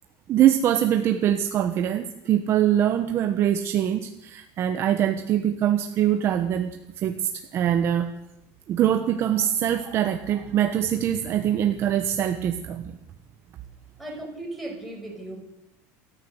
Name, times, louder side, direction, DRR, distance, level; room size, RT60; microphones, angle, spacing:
voice 1, 0.3-8.1 8.7-12.9, right 10 dB, 30° right, 6 dB, 1.3 m, -23 dB
voice 2, 14.0-15.4, right 1 dB, ahead, 2 dB, 5.6 m, -36 dB
27.5 x 14.0 x 8.0 m, 0.86 s
cardioid pair, 175°, 8 cm